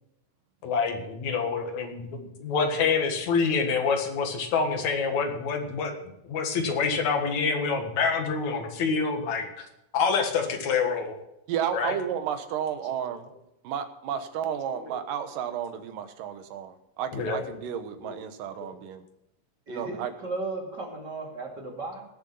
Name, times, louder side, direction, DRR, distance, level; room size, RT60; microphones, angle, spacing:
voice 1, 0.6-9.7 9.9-11.1 11.7-12.0 14.8-15.0 17.1-17.4 18.0-18.2, left 5 dB, 60° left, 5 dB, 2.9 m, -27 dB
voice 2, 11.5-13.2 13.6-19.0 19.7-20.1, right 9 dB, 75° right, 9 dB, 2.7 m, -32 dB
voice 3, 19.7-22.0, right 3 dB, 30° right, -1 dB, 3.0 m, -35 dB
19.5 x 7.0 x 5.4 m, 0.84 s
omnidirectional pair, 3.9 m